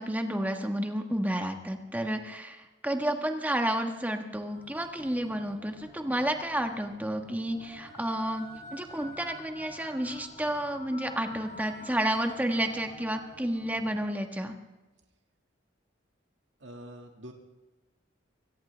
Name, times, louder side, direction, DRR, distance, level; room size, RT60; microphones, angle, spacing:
voice 1, 0.0-14.5, right 1 dB, 10° right, 4 dB, 1.4 m, -31 dB
sound 1, 4.5-14.0, left 1 dB, 45° left, 4.0 m, -48 dB
voice 2, 16.6-17.3, equal, 70° right, 2 dB, 1.8 m, -45 dB
24.0 x 17.5 x 3.4 m, 1.1 s
head